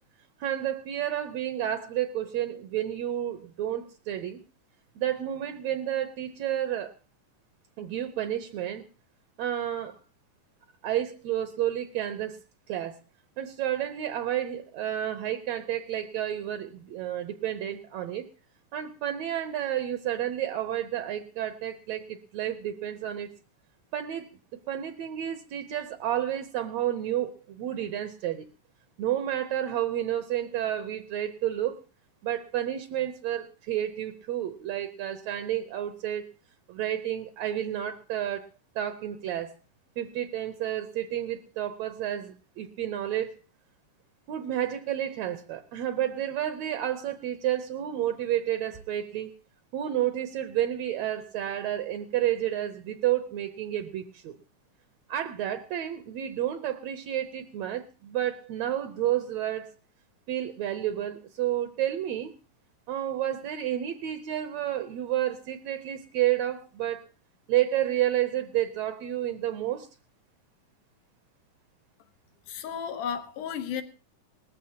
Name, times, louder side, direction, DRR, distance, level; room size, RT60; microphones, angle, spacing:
voice 1, 0.4-4.4 5.0-7.0 7.8-8.8 9.4-10.0 10.8-12.4 12.7-13.0 13.4-18.3 18.7-23.3 23.9-24.3 24.7-28.5 29.0-31.8 32.2-36.3 36.7-38.5 38.7-39.5 40.0-43.3 44.3-49.3 49.7-54.3 55.1-59.7 60.3-62.3 62.9-67.1 67.5-69.9, right 11 dB, 70° right, 1.8 m, -30 dB
voice 2, 72.5-73.8, left 8 dB, 80° left, 2.7 m, -33 dB
19.5 x 14.0 x 2.8 m
omnidirectional pair, 3.6 m